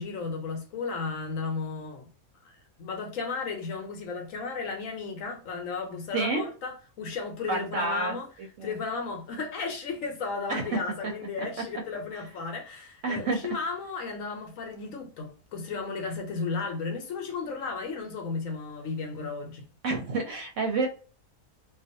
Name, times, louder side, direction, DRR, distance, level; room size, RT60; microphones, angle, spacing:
voice 1, 0.0-2.1 2.8-8.3 8.6-19.6, left 4 dB, 70° left, 1.0 m, -34 dB
voice 2, 6.1-6.5 7.5-8.7 10.5-11.1 11.4-11.5 13.0-13.5 19.8-20.9, right 3 dB, 70° right, 0.8 m, -29 dB
2.5 x 2.3 x 2.6 m
omnidirectional pair, 1.5 m